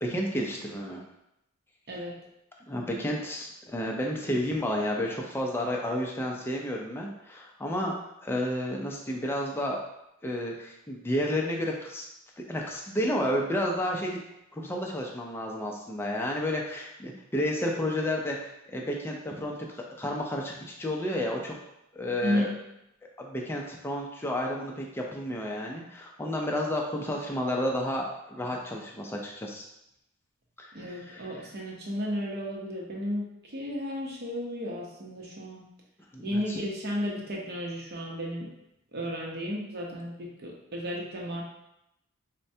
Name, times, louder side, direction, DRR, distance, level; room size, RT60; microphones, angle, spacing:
voice 1, 0.0-1.0 2.7-7.9 8.2-9.8 10.2-12.0 12.5-14.2 14.5-19.6 20.0-21.6 21.9-22.5 23.2-29.6 30.6-31.5 36.1-36.6, left 1 dB, 10° left, -1 dB, 0.4 m, -31 dB
voice 2, 22.2-22.6 30.7-35.7 36.2-38.5 38.9-41.4, equal, 50° right, -2 dB, 0.7 m, -33 dB
4.3 x 2.1 x 2.7 m, 0.83 s
head